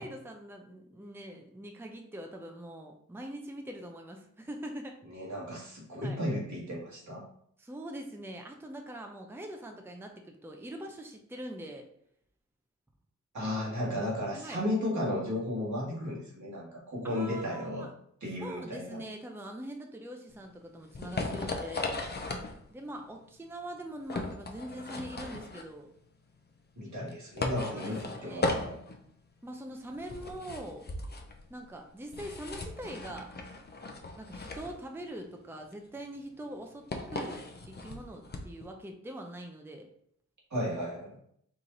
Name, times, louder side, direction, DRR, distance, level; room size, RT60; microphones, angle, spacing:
voice 1, 0.0-5.0 6.0-6.2 7.6-11.9 14.3-14.6 17.0-17.9 18.4-22.1 22.7-25.9 27.7-28.8 29.4-30.9 31.5-33.3 34.2-39.9, right 1 dB, 5° right, 3 dB, 0.6 m, -43 dB
voice 2, 5.1-7.3 13.3-17.9 18.2-19.0 26.8-28.8 40.5-41.2, left 1 dB, 65° right, -4 dB, 1.8 m, -34 dB
sound 1, 20.3-38.7, left 2 dB, 35° left, 0.7 m, -38 dB
4.7 x 2.7 x 3.9 m, 0.68 s
cardioid pair, 75°, 31 cm